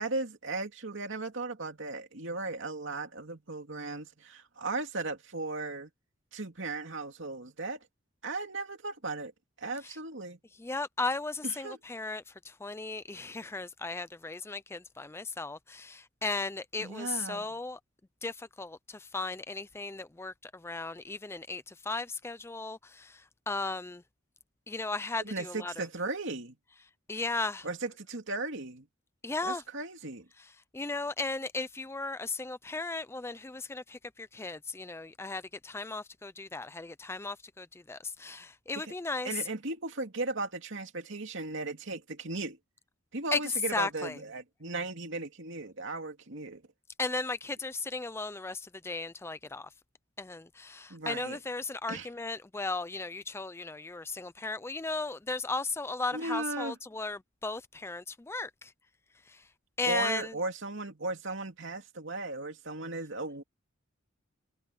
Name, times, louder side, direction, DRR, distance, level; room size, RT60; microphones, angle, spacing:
voice 1, 0.0-5.9 6.3-7.8 8.2-9.3 9.6-10.4 11.4-11.8 16.8-17.5 25.2-26.6 27.6-28.9 29.4-30.3 38.8-38.9 39.2-42.6 43.1-46.6 50.9-51.4 51.9-52.1 56.1-56.8 59.8-63.4, right 3 dB, 65° right, 2.7 m, -36 dB
voice 2, 10.6-17.8 18.2-24.0 24.7-25.9 27.1-27.7 29.2-29.6 30.7-39.5 43.3-43.4 43.7-44.2 47.0-49.7 50.2-58.7 59.3-59.5 59.8-60.4, left 3 dB, 10° left, 0.4 m, -36 dB
head